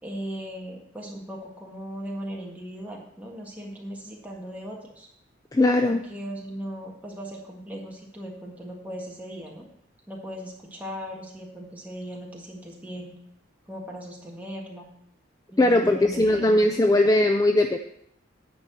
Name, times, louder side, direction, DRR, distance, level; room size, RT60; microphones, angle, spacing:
voice 1, 0.0-5.1 5.9-9.6 10.1-13.1 13.7-14.9 15.5-16.7, equal, 10° right, -2 dB, 1.6 m, -38 dB
voice 2, 5.5-6.0 15.6-17.8, left 1 dB, 15° left, 6 dB, 0.4 m, -20 dB
9.8 x 4.4 x 7.5 m, 0.72 s
head